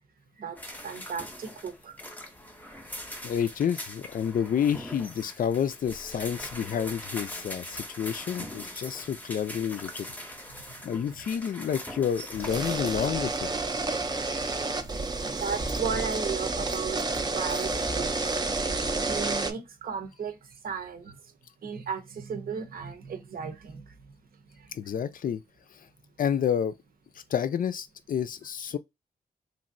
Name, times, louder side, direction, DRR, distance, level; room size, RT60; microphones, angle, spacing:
sound 1, 0.6-13.1, left 1 dB, 10° left, 0.7 m, -42 dB
voice 1, 0.8-2.0 10.5-10.6 14.3-14.7 15.0-17.0 17.3-18.4 19.1-21.2 21.6-23.9 24.6-24.7, right 6 dB, 65° right, 0.7 m, -35 dB
voice 2, 3.2-10.1 10.8-13.5 24.7-25.4 26.2-26.8 27.3-28.8, left 8 dB, 60° left, 0.4 m, -29 dB
sound 2, 12.3-19.5, right 3 dB, 25° right, 0.4 m, -30 dB
3.0 x 2.5 x 2.5 m
cardioid pair, 95°, 16 cm